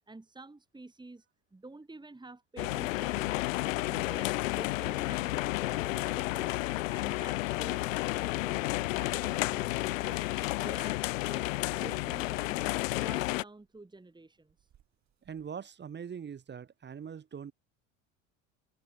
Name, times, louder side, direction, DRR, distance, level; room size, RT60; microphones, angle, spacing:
voice 1, 0.1-1.3 1.5-6.6 6.9-10.3 10.6-11.5 11.7-12.7 13.0-14.7, right 2 dB, 10° right, 3.1 m, -50 dB
sound 1, 2.6-13.4, left 19 dB, 90° left, 0.9 m, -31 dB
sound 2, 3.2-15.5, right 10 dB, 45° right, 5.8 m, -64 dB
voice 2, 15.3-17.5, right 7 dB, 30° right, 1.2 m, -42 dB
open air
supercardioid pair, 85°, 38 cm